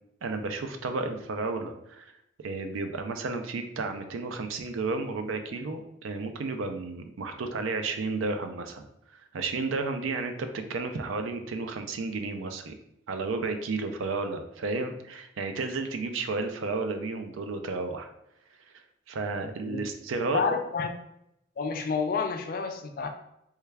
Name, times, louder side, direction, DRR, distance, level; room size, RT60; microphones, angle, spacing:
voice 1, 0.2-2.1 2.4-12.8 13.1-18.1 18.6-20.5, right 3 dB, 85° right, 6 dB, 0.4 m, -32 dB
voice 2, 20.3-20.9 21.6-23.1, left 5 dB, 45° left, 6 dB, 0.4 m, -29 dB
3.3 x 2.3 x 3.3 m, 0.81 s
head